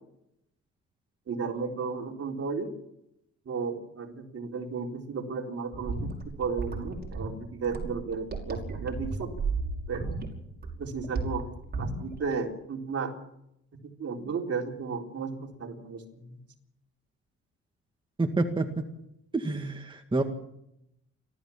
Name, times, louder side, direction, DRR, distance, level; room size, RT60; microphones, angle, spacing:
voice 1, 1.3-2.7 3.5-6.1 6.4-9.3 9.9-10.1 10.8-11.5 11.7-13.1 13.8-16.4, right 5 dB, 50° right, 1 dB, 4.0 m, -34 dB
sound 1, 5.7-12.3, right 3 dB, 35° right, 5.6 m, -34 dB
voice 2, 18.2-18.8 19.3-20.2, right 2 dB, 15° right, 4 dB, 2.0 m, -28 dB
30.0 x 13.5 x 7.2 m, 0.82 s
cardioid pair, 90°, 30 cm